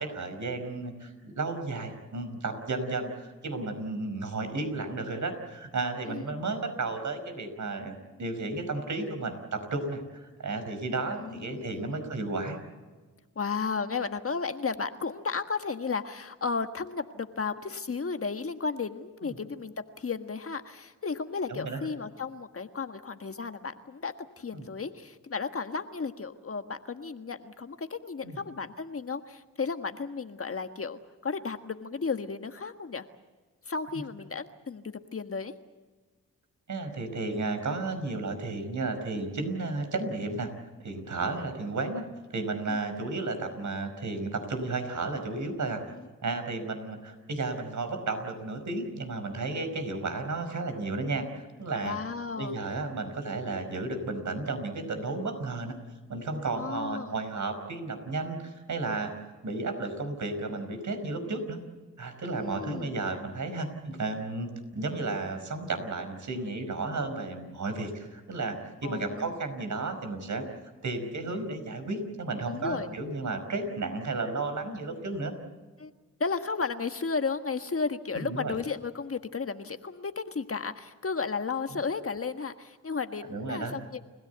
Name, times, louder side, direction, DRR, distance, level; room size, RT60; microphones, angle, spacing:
voice 1, 0.0-12.6 19.2-19.3 21.5-21.8 24.5-24.7 28.2-28.4 36.7-40.5 40.8-42.1 42.3-45.8 46.2-51.3 51.6-52.0 52.4-55.7 56.1-59.1 59.4-61.6 62.0-70.4 70.8-75.3 78.2-78.6 83.3-83.8, right 3 dB, 55° right, 8 dB, 5.2 m, -33 dB
voice 2, 11.2-12.0 13.3-33.0 33.7-34.8 35.1-35.5 42.7-42.8 45.9-46.1 51.8-52.5 56.5-57.2 62.3-62.9 68.8-69.4 72.5-73.0 75.8-75.9 76.2-84.0, left 4 dB, 40° left, 7 dB, 1.5 m, -34 dB
30.0 x 16.0 x 8.1 m, 1.3 s
cardioid pair, 60°, 34 cm